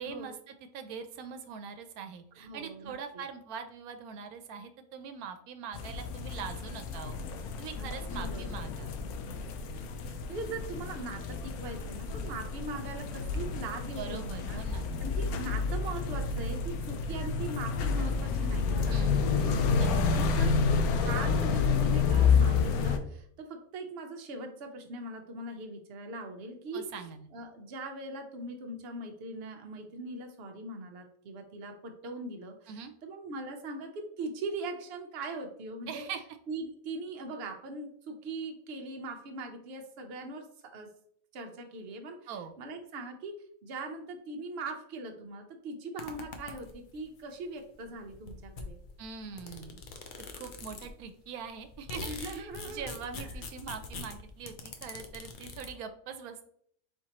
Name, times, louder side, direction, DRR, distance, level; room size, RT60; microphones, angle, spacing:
voice 1, 0.0-7.2 7.6-8.9 13.8-14.9 18.9-19.3 19.7-20.1 26.7-27.3 32.7-32.9 35.9-36.2 42.3-42.5 49.0-49.8 50.3-56.4, right 6 dB, 85° right, 7 dB, 1.0 m, -42 dB
voice 2, 2.4-2.9 7.8-8.5 9.8-19.3 19.6-26.9 27.3-36.0 36.5-40.9 41.3-42.2 42.6-43.3 43.6-48.8 52.0-52.9, right 2 dB, 55° right, 3 dB, 0.8 m, -41 dB
sound 1, 5.7-23.0, left 5 dB, 85° left, 1.0 m, -29 dB
sound 2, 46.0-46.9 47.8-47.9 48.1-51.0 51.5-55.7, left 3 dB, 55° left, 0.5 m, -43 dB
4.4 x 3.6 x 2.8 m, 0.65 s
omnidirectional pair, 1.5 m